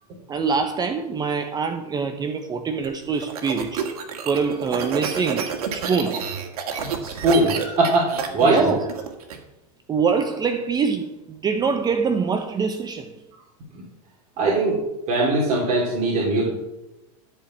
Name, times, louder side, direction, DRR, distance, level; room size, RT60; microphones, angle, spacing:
voice 1, 0.3-3.9 4.3-6.3 8.4-8.8 9.9-13.1, right 5 dB, 20° right, 0.8 m, -24 dB
sound 1, 2.8-9.4, right 7 dB, 80° right, 1.9 m, -29 dB
voice 2, 7.0-8.7 13.7-13.8 14.4-16.5, right 2 dB, 40° right, 2.8 m, -21 dB
12.5 x 4.9 x 7.3 m
supercardioid pair, 130°, 19 cm